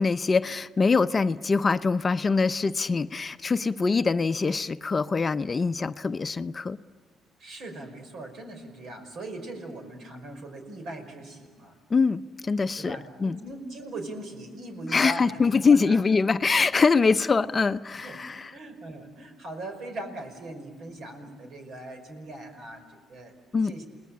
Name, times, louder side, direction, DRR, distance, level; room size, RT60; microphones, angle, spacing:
voice 1, 0.0-6.8 11.9-13.4 14.9-18.5 23.5-23.7, left 4 dB, 35° left, 11 dB, 0.7 m, -24 dB
voice 2, 7.4-11.7 12.8-16.0 17.0-17.1 18.0-18.2 18.5-23.3 23.6-23.9, right 1 dB, 65° right, 5 dB, 5.5 m, -40 dB
29.5 x 19.5 x 8.7 m, 1.5 s
supercardioid pair, 70°, 0 cm